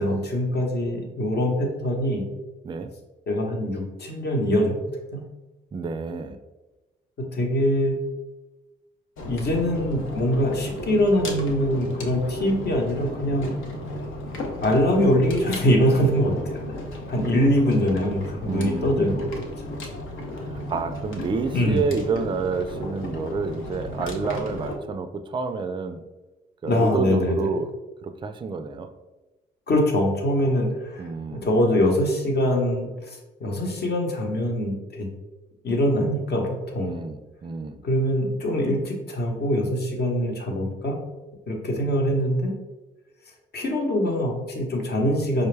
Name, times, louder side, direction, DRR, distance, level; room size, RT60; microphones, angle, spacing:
voice 1, 0.0-2.2 3.3-4.8 5.1-5.2 7.3-7.9 9.2-13.5 14.6-16.6 17.1-19.1 21.5-21.8 26.6-27.5 29.7-35.1 35.6-36.9 37.8-41.0 41.5-42.5 43.5-45.5, equal, 55° left, 1 dB, 0.9 m, -23 dB
voice 2, 5.7-6.4 18.3-19.2 20.4-26.0 26.6-27.7 28.0-28.9 31.0-31.5 36.8-37.8, right 4 dB, 25° right, 9 dB, 0.3 m, -29 dB
sound 1, 9.2-24.8, left 1 dB, 75° left, 0.7 m, -34 dB
4.9 x 2.2 x 3.2 m, 1.1 s
cardioid pair, 90°, 20 cm